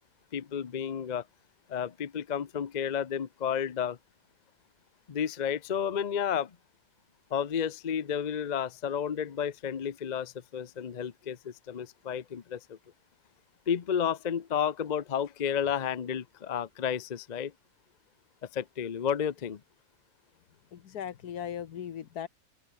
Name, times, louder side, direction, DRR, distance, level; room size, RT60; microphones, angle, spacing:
voice 1, 0.3-1.3 1.7-4.0 5.1-6.6 7.3-12.8 13.7-17.5 18.5-19.6, left 8 dB, 40° left, 0.6 m, -31 dB
voice 2, 20.7-22.3, left 9 dB, 75° left, 1.6 m, -38 dB
omnidirectional pair, 1.7 m